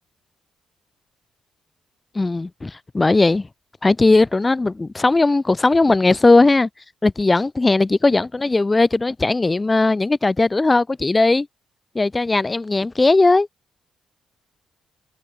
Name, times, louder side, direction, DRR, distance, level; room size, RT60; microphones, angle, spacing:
voice 1, 2.1-3.5 3.8-6.7 7.0-11.5 11.9-13.5, left 3 dB, 20° left, 3.8 m, -17 dB
cardioid pair, 90°, 0 cm